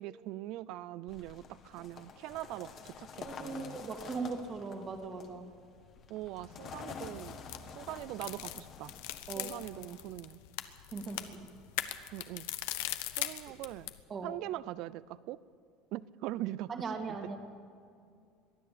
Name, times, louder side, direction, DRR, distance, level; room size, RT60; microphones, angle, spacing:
voice 1, 0.0-3.8 6.1-7.4 7.7-8.9 9.4-10.4 12.1-12.5 13.2-13.9 14.2-15.4 15.9-16.7 17.1-17.2, right 15 dB, 55° right, 18 dB, 0.4 m, -41 dB
sound 1, 1.1-10.0, left 6 dB, 30° left, 1.6 m, -49 dB
voice 2, 3.2-5.5 9.3-9.5 10.9-11.4 14.1-14.4 16.7-17.4, right 4 dB, 25° right, 4 dB, 2.2 m, -39 dB
sound 2, 7.0-14.0, left 15 dB, 80° left, 1.1 m, -41 dB
22.5 x 13.5 x 8.5 m, 2.3 s
cardioid pair, 165°, 0 cm